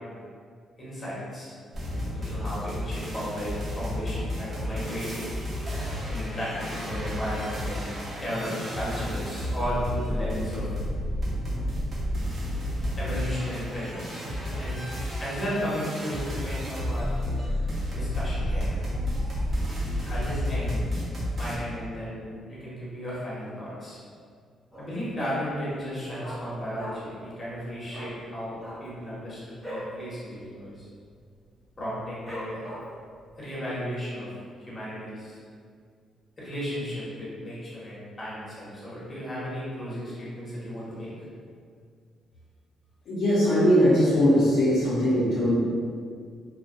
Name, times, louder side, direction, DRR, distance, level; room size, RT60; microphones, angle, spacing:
voice 1, 0.8-1.5 2.1-5.2 6.1-7.9 8.1-10.7 12.9-14.2 14.6-14.8 15.2-17.1 17.9-18.8 20.0-20.8 21.4-24.0 24.8-30.9 31.8-32.6 33.4-34.3 34.7-35.4 36.4-41.1, equal, 30° left, -9 dB, 1.1 m, -34 dB
sound 1, 1.7-21.6, equal, 40° right, 0.6 m, -31 dB
Dog, 24.7-25.1 25.4-25.5 25.8-27.2 27.5-27.6 27.9-28.1 28.5-29.9 30.3-30.5 30.7-31.1 31.6-31.7 32.3-33.1 33.5-33.6, equal, ahead, 0.8 m, -40 dB
voice 2, 43.1-45.5, equal, 70° left, -9 dB, 0.6 m, -20 dB
2.5 x 2.2 x 2.3 m, 2.1 s
cardioid pair, 90°, 0 cm